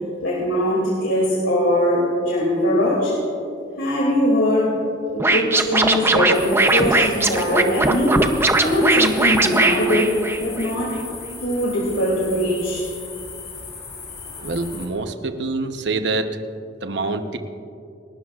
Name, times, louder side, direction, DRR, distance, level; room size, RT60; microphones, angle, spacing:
voice 1, 0.2-3.2 3.8-4.8 5.1-8.1 8.6-10.1 10.4-11.0 11.4-12.9, left 1 dB, 85° left, -4 dB, 2.6 m, -21 dB
Scratching (performance technique), 5.2-10.7, right 2 dB, 15° right, 0.6 m, -19 dB
sound 1, 6.3-14.9, left 4 dB, 35° left, 2.5 m, -37 dB
voice 2, 14.4-16.3 16.8-17.4, right 3 dB, 65° right, 7 dB, 0.9 m, -25 dB
29.0 x 12.5 x 2.4 m, 2.5 s
head